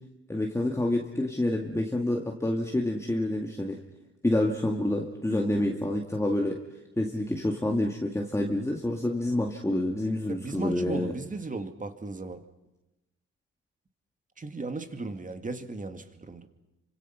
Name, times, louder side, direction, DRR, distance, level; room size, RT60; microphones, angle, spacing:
voice 1, 0.3-3.8 4.2-6.6 7.0-11.1, left 1 dB, 10° left, 0 dB, 2.3 m, -28 dB
voice 2, 10.3-12.4 14.4-16.5, right 3 dB, 25° right, 8 dB, 2.2 m, -36 dB
28.5 x 25.5 x 5.9 m, 0.97 s
cardioid pair, 90°, 30 cm